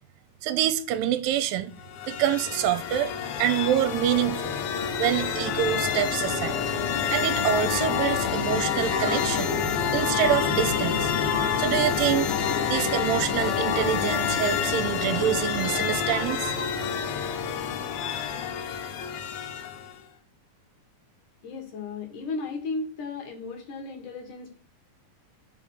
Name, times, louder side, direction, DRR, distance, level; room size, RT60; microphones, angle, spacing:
voice 1, 0.4-1.7 2.1-4.6 5.0-6.6 7.1-9.5 9.9-11.1 11.6-12.3 12.7-16.5, right 10 dB, 85° right, 2.3 m, -26 dB
sound 1, 1.8-20.0, left 7 dB, 80° left, 2.5 m, -28 dB
sound 2, 8.9-9.2 11.3-11.5 13.7-13.9 16.1-16.7, right 4 dB, 15° right, 2.0 m, -35 dB
voice 2, 21.4-24.6, left 3 dB, 65° left, 2.9 m, -35 dB
5.5 x 5.2 x 6.3 m
omnidirectional pair, 4.2 m